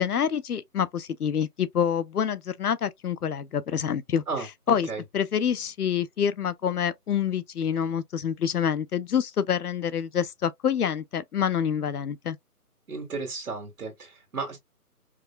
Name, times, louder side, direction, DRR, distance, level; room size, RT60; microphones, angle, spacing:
voice 1, 0.0-4.2 4.7-12.4, left 8 dB, 70° left, 0.6 m, -27 dB
voice 2, 12.9-14.6, right 4 dB, 65° right, 1.7 m, -33 dB
4.7 x 2.0 x 2.3 m
figure-of-eight pair, 175°, 46 cm